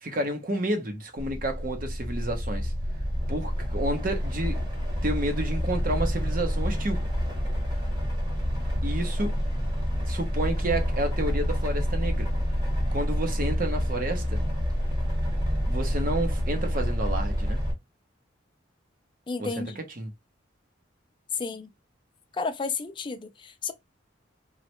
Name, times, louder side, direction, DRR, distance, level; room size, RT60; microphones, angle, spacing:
voice 1, 0.0-2.7 3.3-4.6 5.0-7.0 8.8-9.3 10.1-12.3 12.9-14.4 15.7-17.6 19.4-20.1, right 1 dB, 45° right, 0.8 m, -30 dB
sound 1, 1.2-17.7, equal, 20° right, 1.2 m, -28 dB
voice 2, 19.3-19.8 21.3-21.7 22.3-23.7, left 4 dB, 25° left, 0.4 m, -32 dB
3.1 x 2.4 x 2.8 m
head